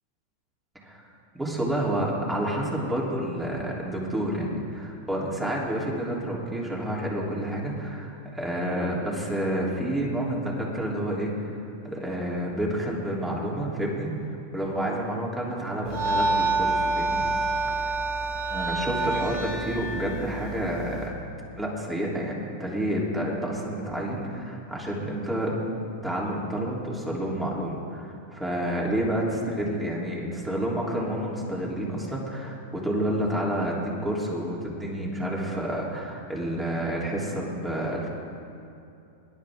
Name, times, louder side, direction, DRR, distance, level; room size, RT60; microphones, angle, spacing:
voice 1, 1.3-11.6 11.8-17.2 18.5-21.2 21.6-25.5 26.0-38.1, right 1 dB, 10° right, -3 dB, 3.3 m, -29 dB
sound 1, 15.8-21.1, right 2 dB, 60° right, 2.9 m, -27 dB
21.0 x 11.0 x 3.7 m, 2.7 s
hypercardioid pair, 100°, 0 cm